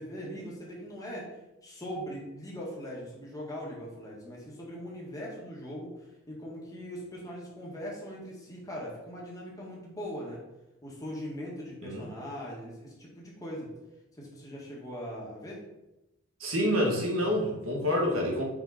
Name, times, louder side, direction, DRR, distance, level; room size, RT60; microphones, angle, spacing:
voice 1, 0.0-1.3 1.6-5.9 6.3-10.4 10.8-13.7 14.2-15.6, equal, 15° left, -4 dB, 1.7 m, -40 dB
voice 2, 16.4-18.4, equal, 70° right, -1 dB, 1.6 m, -27 dB
5.3 x 5.0 x 4.2 m, 0.95 s
head